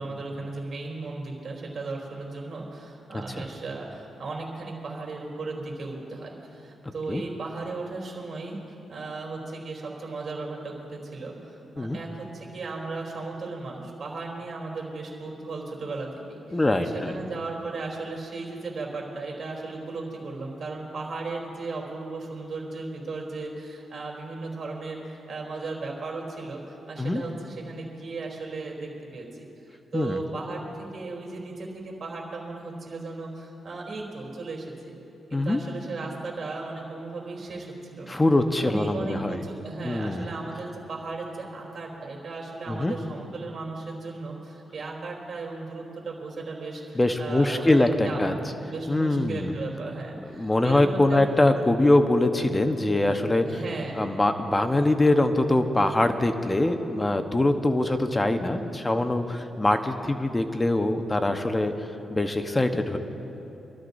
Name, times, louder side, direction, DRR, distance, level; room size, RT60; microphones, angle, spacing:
voice 1, 0.0-8.6 8.9-29.5 29.9-35.0 35.3-38.2 38.6-48.2 48.6-51.2 51.6-51.7 53.4-54.0, right 3 dB, 60° right, -1 dB, 3.3 m, -36 dB
voice 2, 3.1-3.4 7.1-7.2 11.8-12.0 16.5-17.2 27.0-27.2 29.9-30.2 35.3-35.6 38.1-39.4 39.8-40.3 42.7-42.9 46.9-48.3 48.9-49.5 50.3-53.5 54.0-61.7 62.1-63.0, left 2 dB, 20° left, 7 dB, 1.0 m, -23 dB
26.0 x 13.0 x 2.7 m, 3.0 s
cardioid pair, 65°, 0 cm